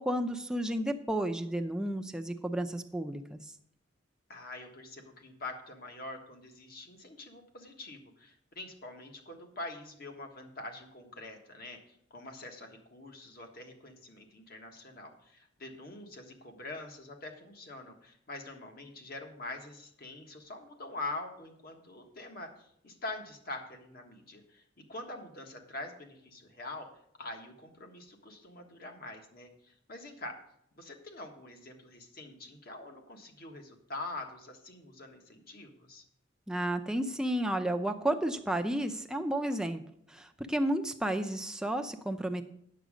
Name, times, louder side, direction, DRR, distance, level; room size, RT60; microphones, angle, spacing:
voice 1, 0.0-3.4 36.5-39.8 40.1-42.4, right 1 dB, 5° right, 6 dB, 0.6 m, -32 dB
voice 2, 4.3-26.9 27.2-30.4 30.8-36.0, left 2 dB, 50° left, 3 dB, 1.5 m, -44 dB
9.3 x 7.4 x 5.0 m, 0.73 s
head